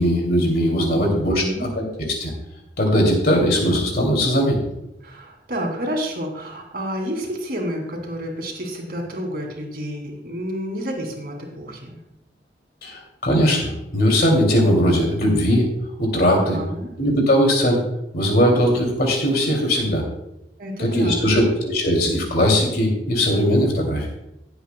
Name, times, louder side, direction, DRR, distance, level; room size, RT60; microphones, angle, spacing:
voice 1, 0.0-2.3 2.8-4.6 12.8-15.7 16.0-16.6 17.0-17.8 18.1-20.0 20.8-24.1, equal, 60° left, 1 dB, 2.6 m, -19 dB
voice 2, 0.9-1.7 5.0-12.0 16.3-16.9 20.6-21.5, equal, 60° right, 1 dB, 2.6 m, -30 dB
18.5 x 8.0 x 2.2 m, 0.86 s
head